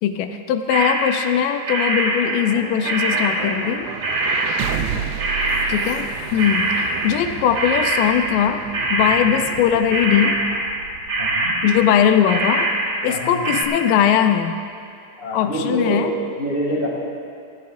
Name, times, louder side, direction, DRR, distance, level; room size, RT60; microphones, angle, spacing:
voice 1, 0.0-3.9 5.7-10.4 11.6-12.7 13.0-14.6 15.3-16.1, left 9 dB, 80° left, 7 dB, 2.2 m, -20 dB
sound 1, 0.7-1.4 1.7-3.8 4.0-13.2 13.4-13.6, right 2 dB, 65° right, 1.0 m, -23 dB
sound 2, 1.6-13.7, right 10 dB, 85° right, 1.7 m, -34 dB
voice 2, 4.6-5.1 9.2-9.3 11.2-11.5 13.1-13.5 15.2-16.0 16.4-16.9, equal, 20° right, -5 dB, 1.6 m, -26 dB
19.5 x 15.0 x 2.6 m, 2.5 s
omnidirectional pair, 4.3 m